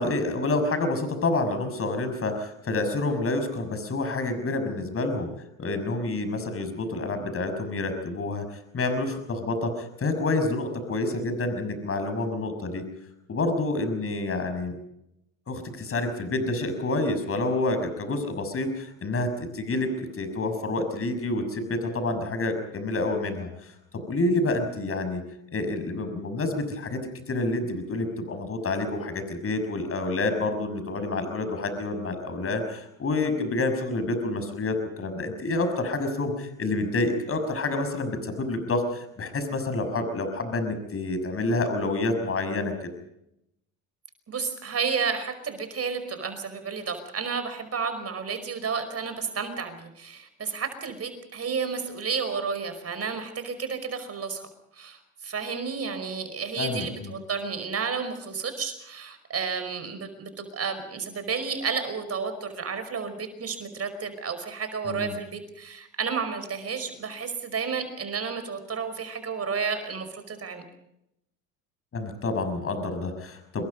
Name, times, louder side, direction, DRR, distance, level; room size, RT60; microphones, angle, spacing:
voice 1, 0.0-5.3 5.6-8.4 8.7-12.8 13.3-14.8 15.5-25.2 25.5-27.0 27.3-42.9 56.6-57.1 64.8-65.2 71.9-73.6, left 2 dB, 35° left, 8 dB, 6.2 m, -28 dB
voice 2, 44.3-54.4 54.7-70.6, right 5 dB, 35° right, 9 dB, 5.2 m, -31 dB
27.0 x 22.0 x 5.3 m, 0.81 s
hypercardioid pair, 80°, 40 cm